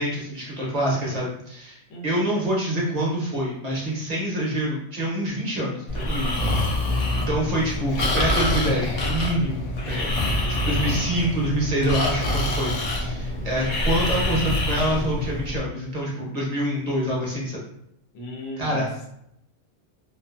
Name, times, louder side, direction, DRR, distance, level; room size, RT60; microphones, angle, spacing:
voice 1, 0.0-6.4 6.8-12.7 13.0-17.6 18.6-18.9, right 1 dB, 40° right, -4 dB, 0.7 m, -26 dB
voice 2, 0.8-1.3 1.9-2.3 10.4-10.9 18.1-19.1, equal, 80° left, -1 dB, 1.0 m, -37 dB
Breathing, 5.9-15.6, left 1 dB, 50° left, 0.4 m, -25 dB
2.5 x 2.4 x 2.4 m, 0.76 s
omnidirectional pair, 1.2 m